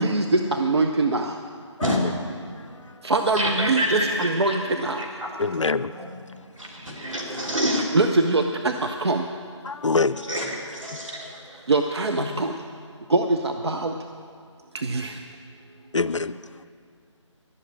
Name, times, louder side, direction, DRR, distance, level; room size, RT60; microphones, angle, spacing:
voice 1, 0.0-1.4 3.0-5.0 7.9-9.3 11.7-12.6 13.1-13.9 14.7-15.2, right 2 dB, 55° right, 4 dB, 0.7 m, -23 dB
voice 2, 1.8-2.1 3.3-4.6 5.0-5.4 5.7-6.3 6.6-7.9 10.2-11.7 12.2-12.3, equal, 85° right, -2 dB, 3.3 m, -28 dB
voice 3, 5.4-5.9 9.6-10.3 10.9-11.1 15.9-16.4, left 4 dB, 75° left, 14 dB, 0.5 m, -24 dB
12.0 x 7.6 x 8.7 m, 2.1 s
figure-of-eight pair, 155°, 16 cm